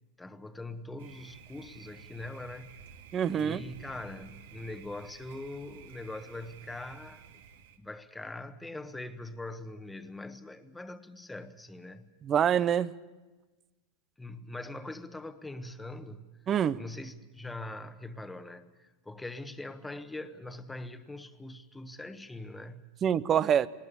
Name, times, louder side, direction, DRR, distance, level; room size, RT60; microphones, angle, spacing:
voice 1, 0.2-2.8 3.3-7.3 7.8-12.1 14.2-16.3 16.7-22.8, left 2 dB, 10° left, 1.2 m, -42 dB
Thunder, 1.0-7.8, right 7 dB, 80° right, 2.0 m, -52 dB
voice 2, 3.1-3.6 12.2-12.9 16.5-16.8 23.0-23.7, right 9 dB, 30° right, 0.7 m, -25 dB
20.0 x 19.0 x 8.5 m
hypercardioid pair, 120°, 0 cm